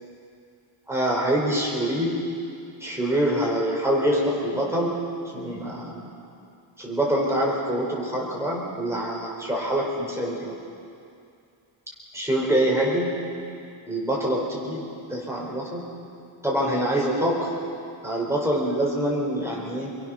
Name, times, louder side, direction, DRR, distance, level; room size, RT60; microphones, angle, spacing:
voice 1, 0.9-2.2 2.8-5.0 5.3-6.1 6.8-10.5 12.1-13.1 13.9-15.8 16.4-17.5 18.0-19.9, right 1 dB, 5° right, -4 dB, 4.5 m, -25 dB
27.0 x 23.0 x 6.3 m, 2.5 s
wide cardioid pair, 175°, 48 cm